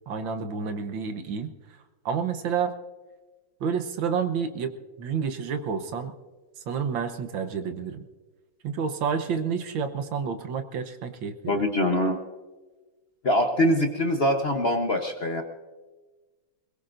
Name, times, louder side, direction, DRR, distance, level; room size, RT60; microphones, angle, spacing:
voice 1, 0.1-1.5 2.0-2.7 3.6-4.7 5.0-6.1 6.7-8.0 8.6-11.6, right 6 dB, 70° right, 8 dB, 1.7 m, -29 dB
voice 2, 11.5-12.2 13.2-15.4, left 1 dB, 40° left, 4 dB, 1.0 m, -23 dB
21.5 x 21.5 x 2.6 m, 1.2 s
omnidirectional pair, 2.2 m